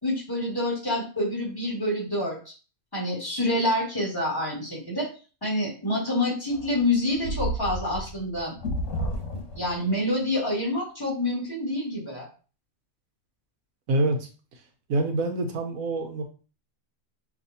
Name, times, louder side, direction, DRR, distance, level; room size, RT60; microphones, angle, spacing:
voice 1, 0.0-2.5 2.9-5.1 5.4-8.5 9.3-12.3, left 1 dB, 15° left, -6 dB, 2.2 m, -27 dB
sound 1, 6.5-9.9, equal, 70° left, 1.4 m, -32 dB
voice 2, 13.9-14.3 14.9-16.2, right 2 dB, 90° right, 4 dB, 1.2 m, -26 dB
6.0 x 2.7 x 2.7 m, 0.35 s
omnidirectional pair, 1.4 m